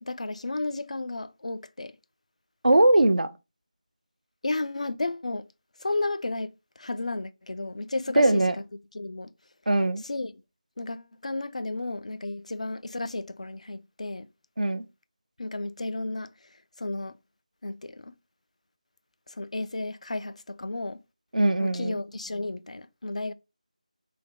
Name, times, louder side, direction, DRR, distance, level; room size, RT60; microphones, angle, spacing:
voice 1, 0.0-2.0 4.4-5.5 5.8-8.6 8.9-9.3 10.0-10.4 10.8-14.3 15.4-17.2 17.6-18.1 19.3-21.0 21.6-23.3, left 2 dB, 55° left, 0.4 m, -33 dB
voice 2, 2.6-3.3 8.2-8.5 9.7-10.0 14.6-14.8 21.3-22.0, right 1 dB, 75° right, 0.6 m, -21 dB
3.3 x 2.1 x 3.8 m
figure-of-eight pair, 165°, 4 cm